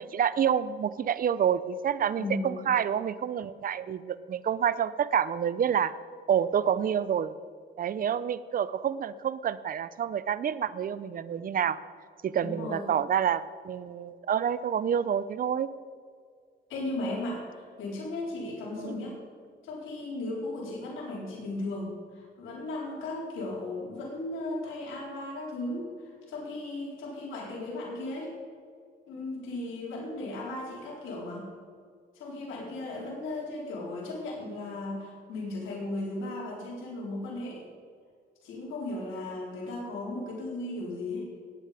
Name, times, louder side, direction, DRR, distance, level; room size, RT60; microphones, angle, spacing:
voice 1, 0.0-5.9 6.3-7.3 7.8-11.8 12.2-15.7 18.8-19.0, right 8 dB, 45° right, 16 dB, 0.6 m, -28 dB
voice 2, 2.2-2.7 12.4-12.9 16.7-19.2 19.6-28.3 29.1-31.5 32.1-37.6 38.4-41.4, left 2 dB, 80° left, -4 dB, 4.1 m, -36 dB
18.0 x 8.8 x 5.1 m, 2.1 s
cardioid pair, 90°, 20 cm